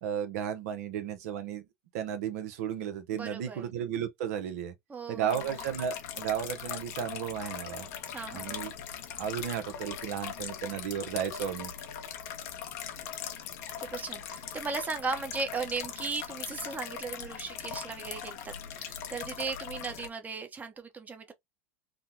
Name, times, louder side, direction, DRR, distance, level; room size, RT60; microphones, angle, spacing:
voice 1, 0.0-1.6 1.9-4.7 5.1-7.9 8.3-8.7 9.2-11.7, right 9 dB, 75° right, 0.9 m, -34 dB
voice 2, 3.1-3.7 4.9-5.5 8.1-8.7 13.8-21.3, right 4 dB, 20° right, 0.8 m, -37 dB
sound 1, 5.3-20.1, left 8 dB, 70° left, 1.0 m, -40 dB
3.6 x 2.2 x 2.7 m
hypercardioid pair, 105°, 9 cm